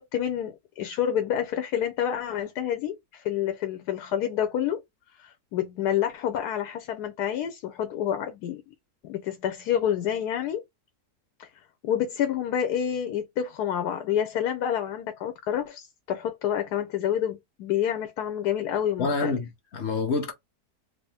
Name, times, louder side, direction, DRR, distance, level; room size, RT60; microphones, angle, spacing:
voice 1, 0.0-4.8 5.2-8.6 9.0-10.6 11.4-11.5 11.8-19.3, left 9 dB, 85° left, 1.2 m, -28 dB
voice 2, 19.0-20.3, left 4 dB, 50° left, 1.0 m, -27 dB
3.4 x 2.7 x 3.3 m
omnidirectional pair, 1.6 m